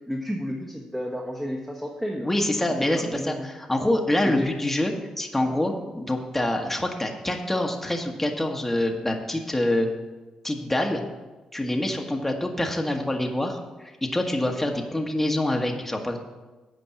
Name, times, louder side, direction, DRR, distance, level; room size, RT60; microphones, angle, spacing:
voice 1, 0.1-2.3 2.8-3.5 4.2-4.5, equal, 10° right, -1 dB, 1.5 m, -31 dB
voice 2, 2.2-9.9 10.4-11.0 11.5-16.2, left 1 dB, 10° left, 2 dB, 1.4 m, -26 dB
8.6 x 5.3 x 7.5 m, 1.2 s
supercardioid pair, 60°, 2 cm